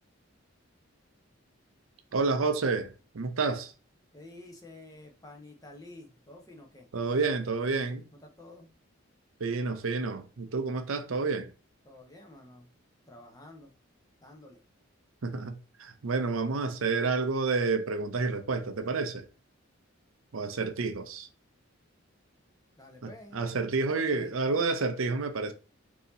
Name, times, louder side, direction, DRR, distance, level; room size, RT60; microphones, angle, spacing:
voice 1, 2.1-3.7 6.9-8.0 9.4-11.5 15.2-19.3 20.3-21.3 23.0-25.5, right 4 dB, 75° right, 0.6 m, -29 dB
voice 2, 4.1-6.9 8.2-8.7 11.8-12.7 13.1-13.7 14.2-14.6 22.8-23.5 23.8-24.8, left 2 dB, 15° left, 0.8 m, -50 dB
4.0 x 2.8 x 3.9 m
head